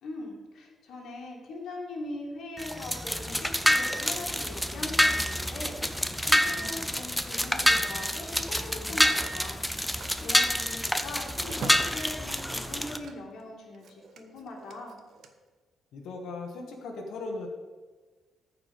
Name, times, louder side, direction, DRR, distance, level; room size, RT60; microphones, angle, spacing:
voice 1, 0.0-9.6 10.2-15.0, left 2 dB, 65° left, -2 dB, 2.2 m, -41 dB
sound 1, 2.6-13.0, equal, ahead, 0.5 m, -27 dB
Telephone, 9.0-13.4 13.7-15.3, right 4 dB, 60° right, 1.0 m, -46 dB
voice 2, 15.9-17.5, left 3 dB, 85° left, 2 dB, 1.4 m, -37 dB
14.0 x 4.8 x 5.3 m, 1.3 s
cardioid pair, 155°, 0 cm